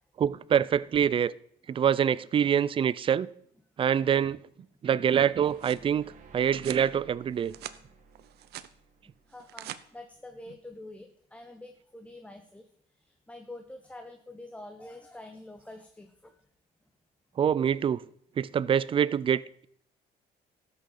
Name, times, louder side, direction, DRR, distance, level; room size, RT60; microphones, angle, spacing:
voice 1, 0.2-1.3 1.7-3.3 3.8-4.4 4.8-6.1 6.3-7.5 17.4-18.0 18.4-19.7, right 8 dB, 30° right, 0.4 m, -25 dB
sound 1, 5.2-10.3, right 4 dB, 45° right, 2.0 m, -55 dB
sound 2, 5.2-5.9 6.5-6.9 7.3-7.8 8.2-8.7 9.3-9.8, right 13 dB, 75° right, 0.7 m, -43 dB
voice 2, 9.3-16.4, left 2 dB, 5° left, 0.9 m, -47 dB
12.5 x 6.4 x 6.6 m
cardioid pair, 110°, 17 cm